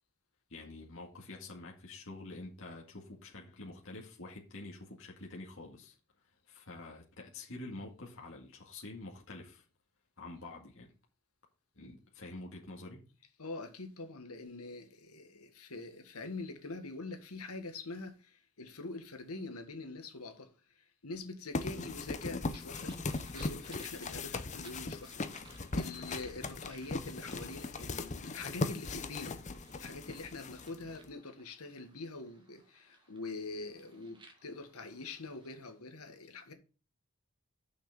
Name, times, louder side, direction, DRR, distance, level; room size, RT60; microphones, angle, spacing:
voice 1, 0.5-6.0 6.5-9.6 10.2-10.9 11.7-13.0 21.7-22.0, left 2 dB, 60° left, 2.1 m, -47 dB
voice 2, 13.4-22.9 23.3-25.2 25.6-29.5 29.8-36.5, left 3 dB, 80° left, 1.7 m, -44 dB
sound 1, 21.5-31.1, left 3 dB, 30° left, 0.7 m, -39 dB
Papel de Porro, 22.5-35.7, right 3 dB, 20° right, 1.9 m, -61 dB
6.3 x 6.1 x 6.9 m
head